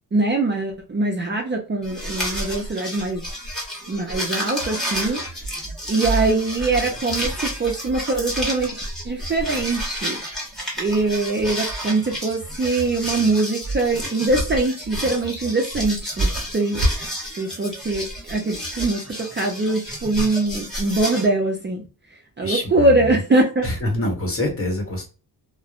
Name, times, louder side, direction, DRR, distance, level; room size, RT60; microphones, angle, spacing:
voice 1, 0.1-3.2 3.9-5.2 5.9-10.2 10.8-16.8 17.4-21.8 22.4-23.7, right 2 dB, 30° right, 0.5 m, -22 dB
sound 1, 1.8-21.3, equal, ahead, 1.1 m, -29 dB
voice 2, 22.4-23.2 23.6-25.1, left 1 dB, 35° left, 0.9 m, -26 dB
3.1 x 2.0 x 2.4 m
wide cardioid pair, 130°, 40 cm